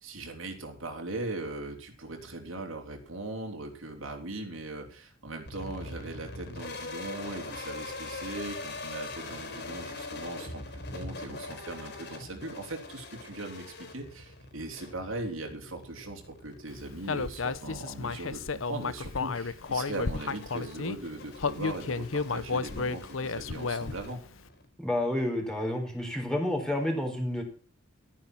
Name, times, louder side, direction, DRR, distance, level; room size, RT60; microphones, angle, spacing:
voice 1, 0.0-24.2, right 2 dB, 75° right, 3 dB, 3.4 m, -39 dB
sound 1, 5.5-24.7, left 2 dB, 55° left, 4.5 m, -43 dB
Human voice, 17.1-21.0 21.4-24.1, left 4 dB, 70° left, 0.8 m, -32 dB
voice 2, 24.8-27.4, left 1 dB, 5° left, 1 dB, 4.0 m, -30 dB
13.5 x 10.0 x 6.0 m, 0.38 s
head